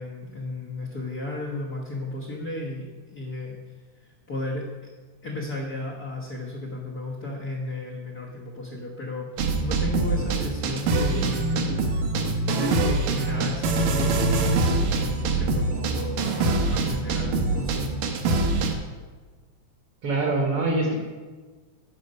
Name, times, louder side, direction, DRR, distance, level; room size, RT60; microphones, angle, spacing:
voice 1, 0.0-3.6 4.0-4.9 5.2-9.3 9.6-18.0, left 2 dB, 70° left, -2 dB, 0.9 m, -34 dB
sound 1, 9.4-18.7, right 3 dB, 75° right, 2.2 m, -24 dB
voice 2, 20.0-21.0, right 2 dB, 60° right, 0 dB, 1.7 m, -24 dB
11.5 x 5.1 x 5.3 m, 1.4 s
omnidirectional pair, 3.6 m